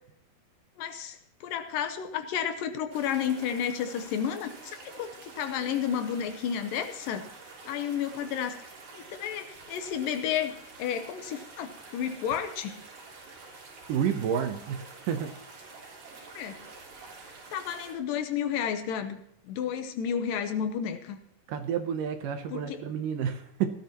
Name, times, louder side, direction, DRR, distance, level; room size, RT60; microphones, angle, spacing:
voice 1, 0.8-7.3 7.7-8.6 8.9-10.5 10.8-12.8 16.4-16.7 17.5-19.2 19.5-21.2 22.5-22.8, left 8 dB, 75° left, 7 dB, 2.5 m, -31 dB
sound 1, 2.9-17.9, right 3 dB, 90° right, 5.1 m, -48 dB
voice 2, 13.9-15.4 21.5-23.7, right 8 dB, 75° right, 7 dB, 2.3 m, -30 dB
18.0 x 12.5 x 2.9 m, 0.77 s
omnidirectional pair, 4.2 m